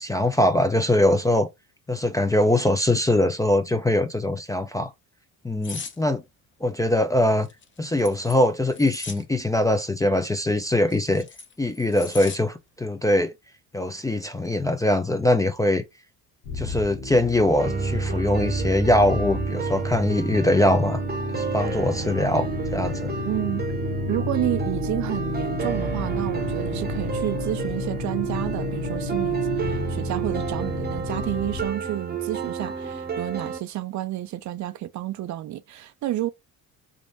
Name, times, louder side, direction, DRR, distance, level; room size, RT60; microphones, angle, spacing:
voice 1, 0.0-1.5 1.9-4.9 5.4-6.2 6.6-7.5 7.8-11.3 11.6-13.3 13.7-15.8 16.5-21.0 21.3-23.1, left 1 dB, 10° left, 0.4 m, -22 dB
sound 1, 5.6-6.0 7.4-9.2 10.6-12.4 12.8-13.0, left 5 dB, 30° left, 0.8 m, -38 dB
sound 2, 16.4-31.7, left 3 dB, 75° left, 1.1 m, -32 dB
sound 3, 17.6-33.6, right 5 dB, 25° right, 0.8 m, -30 dB
voice 2, 23.2-23.7 24.1-36.3, right 14 dB, 50° right, 0.4 m, -30 dB
3.7 x 2.5 x 2.5 m
cardioid pair, 105°, 38 cm